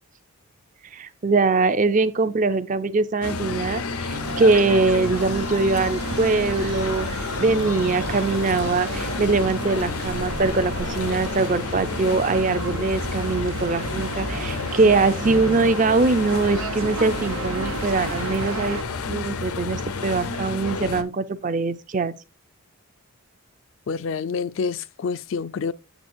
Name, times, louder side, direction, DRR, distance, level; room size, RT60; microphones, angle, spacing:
voice 1, 0.9-18.8 19.1-22.1, right 3 dB, 35° right, 0.4 m, -22 dB
sound 1, 3.2-21.0, left 4 dB, 85° left, 0.7 m, -30 dB
sound 2, 4.1-18.8, right 3 dB, 75° right, 0.9 m, -34 dB
sound 3, 5.1-11.5, right 1 dB, 50° right, 1.2 m, -39 dB
voice 2, 14.5-14.9 23.9-25.7, left 5 dB, 60° left, 0.3 m, -28 dB
8.0 x 7.0 x 2.6 m
head